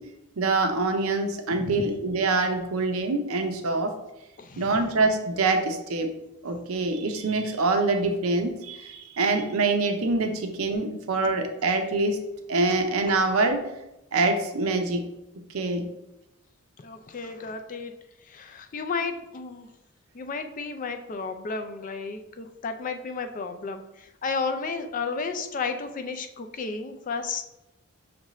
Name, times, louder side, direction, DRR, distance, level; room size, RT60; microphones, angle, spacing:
voice 1, 0.4-3.9 4.6-6.1 6.4-12.2 12.5-13.7 14.1-15.0 15.5-15.9, right 3 dB, 80° right, 5 dB, 0.6 m, -25 dB
voice 2, 1.6-1.9 4.4-4.8 16.8-17.9 18.3-19.7 20.1-27.4, left 4 dB, 40° left, 7 dB, 0.4 m, -33 dB
6.4 x 2.5 x 3.0 m, 0.91 s
head